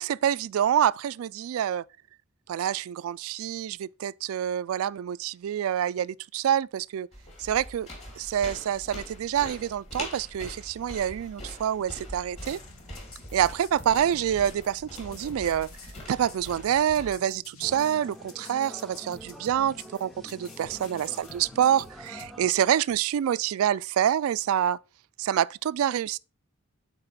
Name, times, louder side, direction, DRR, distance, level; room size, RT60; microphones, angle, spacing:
voice 1, 0.0-1.8 2.5-7.1 7.4-7.9 8.2-12.6 13.3-15.7 16.1-24.8 25.2-26.2, right 10 dB, 80° right, 0.3 m, -27 dB
sound 1, 7.1-17.1, equal, 30° left, 2.8 m, -43 dB
sound 2, 12.4-22.3, left 5 dB, 85° left, 1.5 m, -50 dB
sound 3, 17.6-22.5, equal, ahead, 0.5 m, -46 dB
8.8 x 4.1 x 4.1 m
head